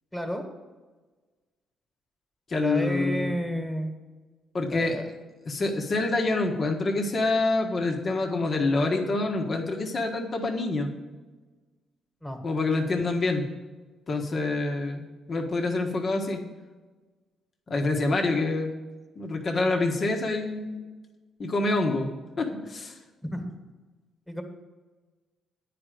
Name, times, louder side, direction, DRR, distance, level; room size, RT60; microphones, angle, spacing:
voice 1, 0.1-0.4 2.5-3.9 4.7-5.1 12.2-12.4 23.2-23.5 24.3-24.4, equal, 5° left, 4 dB, 1.8 m, -31 dB
voice 2, 2.5-3.3 4.5-5.0 5.5-10.9 12.4-13.5 14.1-16.4 17.7-18.7 19.1-20.8 21.4-23.0, left 2 dB, 45° left, 2 dB, 1.4 m, -26 dB
9.8 x 5.1 x 7.7 m, 1.3 s
cardioid pair, 90°, 0 cm